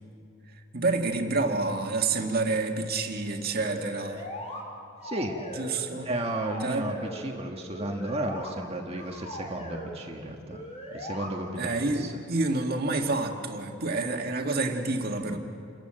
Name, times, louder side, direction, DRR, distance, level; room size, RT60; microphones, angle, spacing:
voice 1, 0.7-4.2 5.6-6.1 6.6-6.9 11.6-15.4, right 3 dB, 50° right, 3 dB, 1.9 m, -28 dB
sound 1, 3.5-4.6 5.0-5.9 6.2-7.2 7.7-8.5 8.9-9.9 10.5-11.3, left 1 dB, 35° left, 4.1 m, -39 dB
voice 2, 5.0-5.4 5.9-10.6 10.9-12.1, right 1 dB, 30° right, 2 dB, 1.6 m, -33 dB
29.0 x 14.5 x 8.9 m, 2.5 s
head